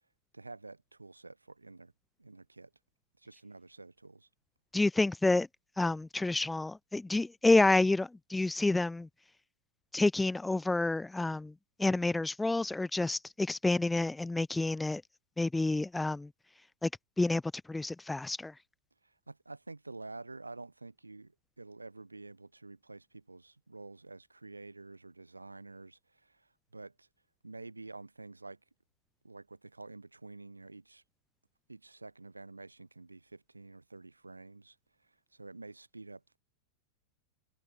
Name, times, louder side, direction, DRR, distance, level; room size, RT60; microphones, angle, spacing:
voice 1, 0.3-1.9 2.2-2.7 3.2-4.3 19.0-27.1 27.4-28.6 29.2-31.0 31.7-36.4, right 3 dB, 80° right, 3.5 m, -49 dB
voice 2, 4.7-5.5 5.8-9.1 9.9-11.5 11.8-15.0 15.4-16.3 16.8-16.9 17.2-17.4 17.7-18.5, left 2 dB, 5° left, 0.4 m, -29 dB
figure-of-eight pair, 90°, 0 cm